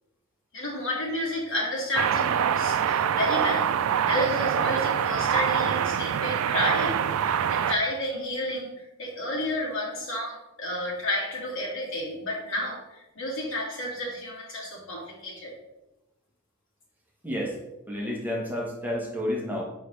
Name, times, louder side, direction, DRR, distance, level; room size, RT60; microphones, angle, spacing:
voice 1, 0.5-15.5, left 1 dB, 65° left, -3 dB, 2.1 m, -31 dB
sound 1, 2.0-7.8, right 8 dB, 75° right, 0.3 m, -25 dB
voice 2, 17.2-17.6 17.9-19.6, left 1 dB, 10° right, -2 dB, 1.0 m, -30 dB
6.6 x 5.4 x 3.2 m, 0.98 s
head